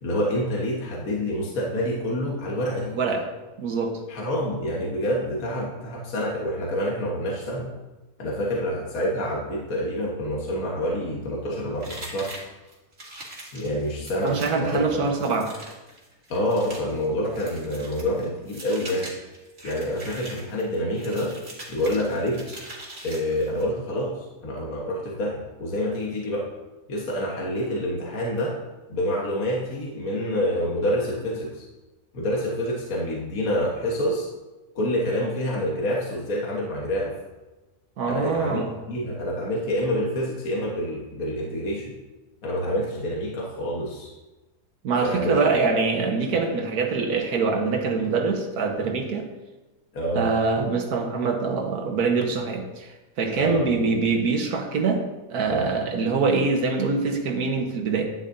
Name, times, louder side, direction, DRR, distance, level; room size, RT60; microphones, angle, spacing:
voice 1, 0.0-3.0 4.1-7.7 8.2-12.3 13.5-14.8 16.3-19.1 19.6-21.3 21.7-22.4 23.0-26.5 26.9-28.6 28.9-31.7 32.1-34.3 34.8-37.2 38.1-41.9 42.4-44.1 45.0-45.5 49.9-50.3 53.4-53.7 55.5-55.6, equal, 65° left, -3 dB, 1.8 m, -27 dB
voice 2, 2.9-3.2 3.6-4.0 14.2-15.5 38.0-38.7 44.8-49.3 50.1-52.9 53.2-55.0 55.3-58.1, right 4 dB, 90° right, 3 dB, 1.7 m, -24 dB
sound 1, 11.8-23.7, right 1 dB, 45° right, 2.2 m, -42 dB
10.5 x 10.0 x 2.7 m, 1.1 s
omnidirectional pair, 1.6 m